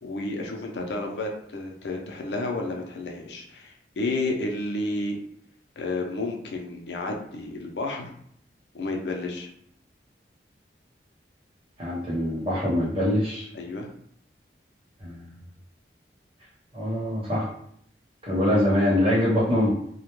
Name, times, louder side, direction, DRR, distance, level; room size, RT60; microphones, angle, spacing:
voice 1, 0.0-5.2 5.8-8.1 8.7-9.5 13.5-13.9, left 2 dB, 75° left, 1 dB, 0.5 m, -31 dB
voice 2, 11.8-13.5 15.0-15.3 16.7-17.5 18.2-19.8, left 1 dB, 30° right, -6 dB, 0.9 m, -24 dB
2.2 x 2.1 x 3.0 m, 0.66 s
head